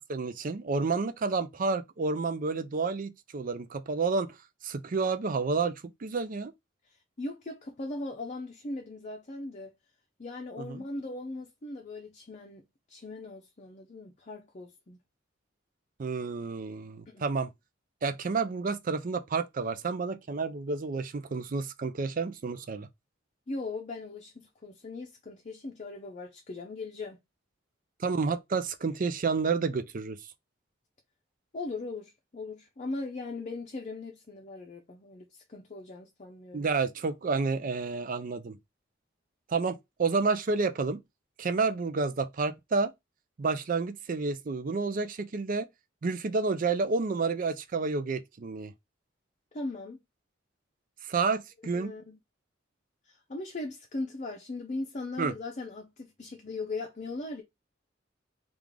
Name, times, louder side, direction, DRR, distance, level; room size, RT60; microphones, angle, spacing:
voice 1, 0.0-4.4 4.6-6.5 10.6-10.8 16.0-17.5 18.0-22.9 28.0-30.2 36.5-38.6 39.5-41.0 41.4-42.9 43.4-45.7 46.0-48.7 51.1-51.9 55.2-55.3, right 4 dB, 45° right, 0.5 m, -30 dB
voice 2, 6.8-9.7 10.2-15.0 17.1-17.2 23.5-27.2 31.5-36.7 49.5-50.0 51.7-52.2 53.0-57.4, left 2 dB, 40° left, 0.6 m, -39 dB
3.6 x 2.4 x 3.2 m
head